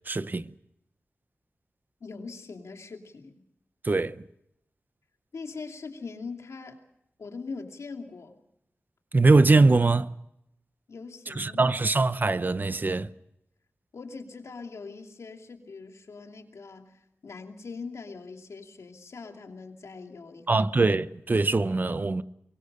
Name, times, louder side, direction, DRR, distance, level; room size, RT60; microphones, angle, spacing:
voice 1, 0.1-0.5 3.8-4.2 9.1-10.1 11.3-13.1 20.5-22.2, right 3 dB, 40° right, 0.8 m, -22 dB
voice 2, 2.0-3.4 5.3-6.8 7.2-8.4 10.9-11.8 13.9-20.7, left 4 dB, 85° left, 2.8 m, -41 dB
23.5 x 22.0 x 6.7 m
wide cardioid pair, 80°, 5 cm